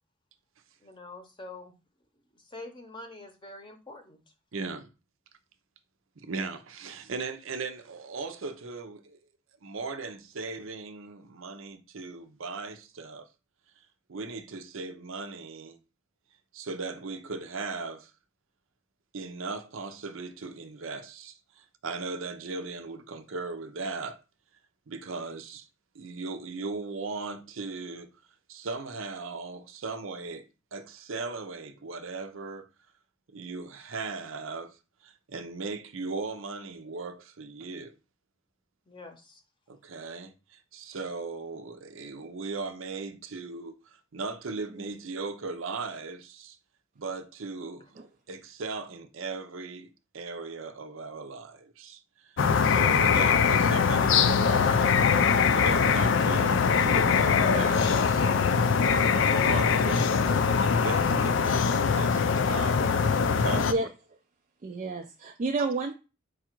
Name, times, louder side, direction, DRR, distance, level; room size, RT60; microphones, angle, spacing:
voice 1, 0.8-1.7 2.5-4.2 38.9-39.4, left 2 dB, 25° left, 0.7 m, -45 dB
voice 2, 4.5-4.9 6.2-9.2 9.6-13.3 14.1-15.8 16.5-18.1 19.1-24.2 24.9-25.7 25.9-28.1 28.5-32.7 33.3-34.8 35.0-38.0 39.7-46.6 47.0-48.0 48.3-54.9 55.5-63.9, right 4 dB, 75° right, 0.6 m, -38 dB
sound 1, 52.4-63.7, left 6 dB, 60° left, 0.4 m, -22 dB
voice 3, 63.5-63.9 64.6-66.0, right 3 dB, 35° right, 0.3 m, -31 dB
4.8 x 2.4 x 4.4 m
head